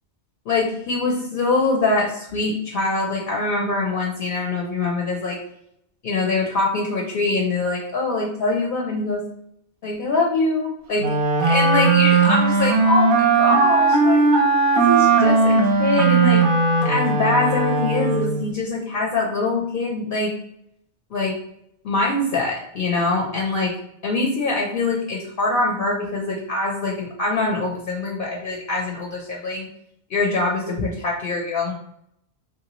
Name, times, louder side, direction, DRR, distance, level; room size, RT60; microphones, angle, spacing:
voice 1, 0.5-5.4 6.0-9.2 9.8-11.1 11.5-14.3 14.7-16.4 16.8-20.3 21.1-21.4 21.8-23.8 24.0-29.7 30.1-31.7, left 2 dB, 60° left, -1 dB, 0.7 m, -23 dB
Wind instrument woodwind instrument, 11.0-18.5, right 4 dB, 60° right, 0.7 m, -18 dB
3.2 x 2.6 x 2.9 m, 0.74 s
omnidirectional pair, 1.2 m